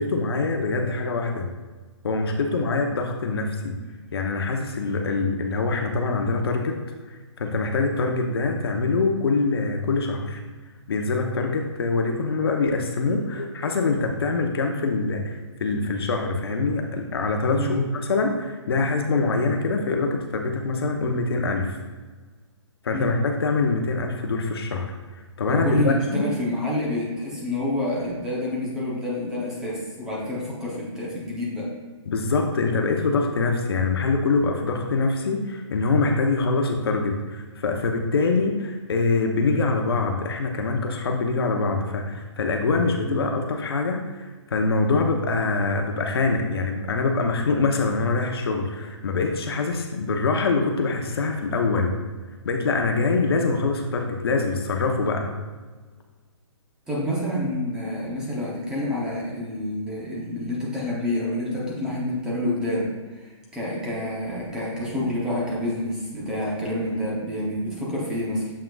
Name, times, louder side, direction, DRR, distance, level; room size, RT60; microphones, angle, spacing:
voice 1, 0.0-1.5 2.0-3.8 4.1-6.8 7.1-10.4 10.9-21.8 22.8-24.9 25.4-26.3 32.1-51.9 52.4-55.3, left 3 dB, 55° left, 3 dB, 0.8 m, -24 dB
voice 2, 25.5-31.7 43.0-43.3 56.9-68.5, left 1 dB, 5° right, -6 dB, 0.7 m, -28 dB
7.5 x 5.7 x 2.3 m, 1.4 s
hypercardioid pair, 165°, 16 cm